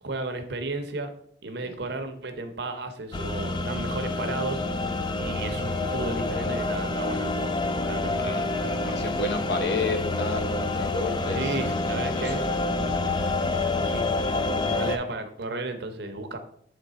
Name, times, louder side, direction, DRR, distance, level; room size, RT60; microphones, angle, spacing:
voice 1, 0.0-1.1 1.4-4.6 5.2-7.5 7.8-8.2 11.3-12.4 13.8-14.1 14.8-16.4, right 2 dB, 60° right, 7 dB, 0.7 m, -33 dB
sound 1, 3.1-15.0, left 2 dB, 25° left, 0.3 m, -27 dB
voice 2, 8.2-12.6, left 3 dB, 60° left, 6 dB, 0.8 m, -32 dB
7.4 x 3.3 x 4.0 m, 0.64 s
head